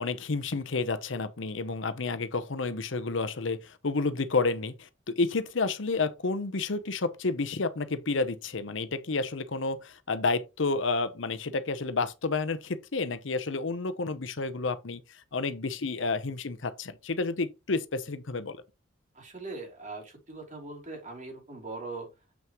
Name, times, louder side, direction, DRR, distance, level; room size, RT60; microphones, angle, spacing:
voice 1, 0.0-15.0 15.3-18.6, left 3 dB, 75° left, 0.8 m, -30 dB
voice 2, 19.1-22.1, right 3 dB, 40° right, 3.2 m, -41 dB
7.4 x 5.8 x 3.1 m
head